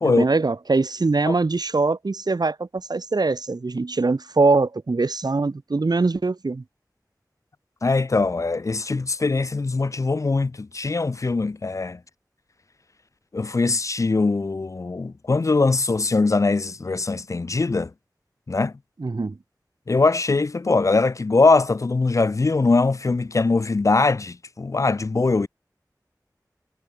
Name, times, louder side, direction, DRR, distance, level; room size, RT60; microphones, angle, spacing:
voice 1, 0.0-6.6 19.0-19.4, right 3 dB, 70° right, 1.1 m, -22 dB
voice 2, 7.8-12.0 13.3-17.9 18.5-18.7 19.9-25.5, left 3 dB, 50° left, 0.4 m, -21 dB
wide cardioid pair, 50°, 7 cm